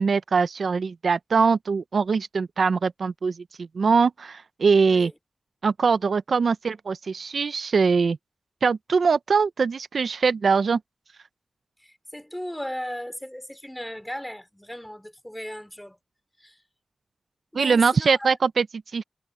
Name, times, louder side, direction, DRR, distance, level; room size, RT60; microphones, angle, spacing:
voice 1, 0.0-5.1 5.6-8.2 8.6-10.8 17.5-18.7 18.9-19.0, right 5 dB, 85° right, 0.5 m, -22 dB
voice 2, 11.8-16.0 16.4-16.6 17.5-18.3, equal, 5° left, 3.6 m, -36 dB
wide cardioid pair, 85°, 0 cm